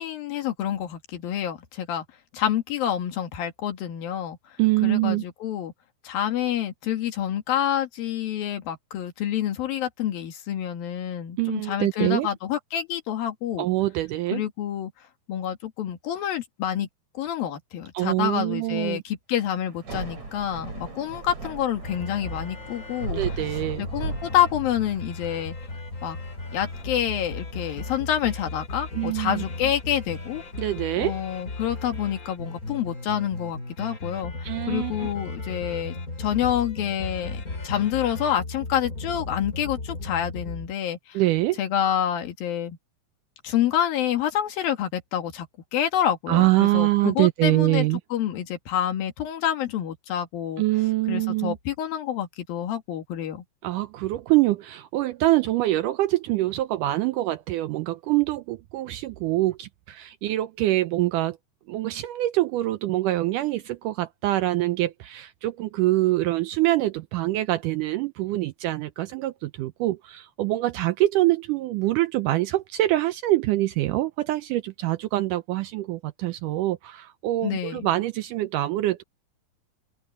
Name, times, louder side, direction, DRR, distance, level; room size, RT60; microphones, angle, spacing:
voice 1, 0.0-2.0 2.3-4.6 4.8-5.7 6.0-13.7 14.3-14.9 15.3-16.9 17.2-23.2 23.5-25.6 26.0-26.2 26.5-30.4 31.0-41.2 41.6-42.8 43.4-45.5 45.7-50.6 51.1-53.4 77.4-77.9, left 10 dB, 75° left, 3.7 m, -28 dB
voice 2, 4.6-5.2 11.4-12.3 13.6-14.4 17.9-19.0 23.1-23.8 29.0-29.4 30.6-31.1 34.4-35.1 41.2-41.6 46.3-48.0 50.6-51.6 53.6-61.4 61.7-79.0, right 16 dB, 80° right, 1.9 m, -24 dB
Thunder / Rain, 19.7-32.8, right 3 dB, 50° right, 7.3 m, -39 dB
sound 1, 21.8-40.7, left 3 dB, 25° left, 2.8 m, -36 dB
open air
omnidirectional pair, 4.2 m